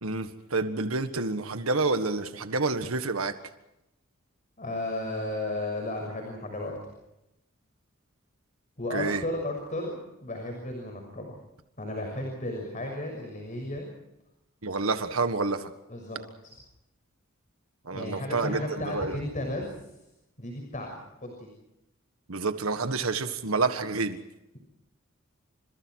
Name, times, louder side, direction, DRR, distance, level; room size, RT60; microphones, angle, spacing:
voice 1, 0.0-3.3 8.9-9.2 14.6-15.7 17.8-19.2 22.3-24.2, right 3 dB, 90° right, 8 dB, 1.7 m, -28 dB
voice 2, 4.6-6.7 8.8-9.9 10.2-11.3 11.8-13.9 15.9-16.2 16.4-16.5 17.9-19.7 20.4-20.9 21.2-21.5, left 1 dB, 40° left, 2 dB, 6.5 m, -34 dB
30.0 x 27.5 x 4.8 m, 0.90 s
head